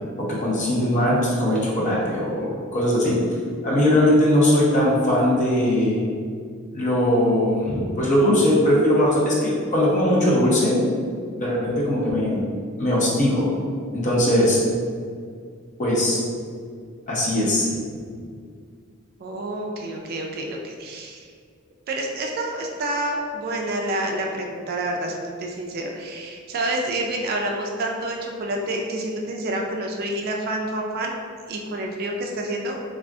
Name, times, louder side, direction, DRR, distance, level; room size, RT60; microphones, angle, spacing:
voice 1, 0.2-2.5 2.7-3.1 3.6-6.0 6.7-10.8 11.4-12.4 12.8-13.5 13.9-14.6 15.8-16.2 17.1-17.7, left 1 dB, 40° left, -5 dB, 0.7 m, -20 dB
voice 2, 19.2-21.2 21.9-31.2 31.5-32.8, right 1 dB, 50° right, 1 dB, 0.3 m, -28 dB
3.5 x 2.4 x 2.3 m, 2.1 s
head